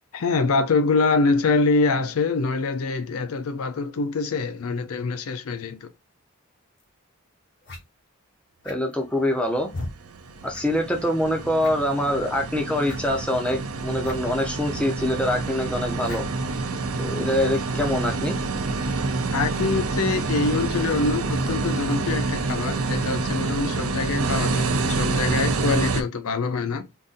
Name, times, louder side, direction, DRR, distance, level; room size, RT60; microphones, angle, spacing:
voice 1, 0.1-5.9 19.3-26.9, left 4 dB, 75° left, 0.5 m, -24 dB
sound 1, 6.8-6.9 7.6-7.8 8.6-9.0 9.7-9.9 10.5-10.7 10.9-11.0 11.6-11.9 12.8-13.0 14.0-14.1 14.4-14.5 16.0-16.3, left 2 dB, 50° left, 1.2 m, -36 dB
voice 2, 8.6-9.7 10.4-16.2 17.0-18.3, left 1 dB, 5° left, 0.6 m, -24 dB
sound 2, 9.3-26.0, right 3 dB, 75° right, 0.5 m, -27 dB
3.8 x 2.6 x 2.4 m
head